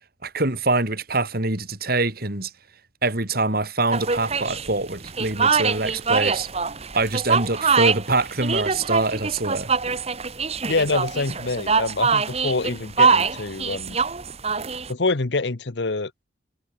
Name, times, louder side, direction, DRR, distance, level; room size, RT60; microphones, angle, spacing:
voice 1, 0.2-2.5 3.0-6.5 6.9-9.7, right 2 dB, 50° right, 3.4 m, -24 dB
sound 1, 3.9-14.9, right 5 dB, 35° right, 1.4 m, -24 dB
voice 2, 10.7-14.0 14.9-16.1, left 3 dB, 65° left, 1.0 m, -26 dB
head